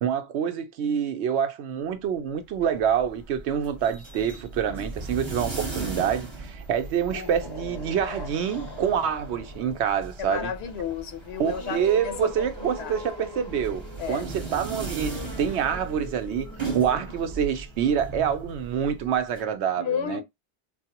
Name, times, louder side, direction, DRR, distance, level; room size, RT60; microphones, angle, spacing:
voice 1, 0.0-10.5 11.4-16.5 16.7-20.2, right 8 dB, 85° right, 0.9 m, -26 dB
sound 1, 2.4-19.4, right 3 dB, 25° right, 1.0 m, -38 dB
sound 2, 6.8-18.1, left 2 dB, 35° left, 0.4 m, -42 dB
voice 2, 10.2-13.0 14.0-14.3 19.8-20.2, left 8 dB, 75° left, 0.9 m, -32 dB
4.5 x 2.1 x 2.8 m
omnidirectional pair, 1.1 m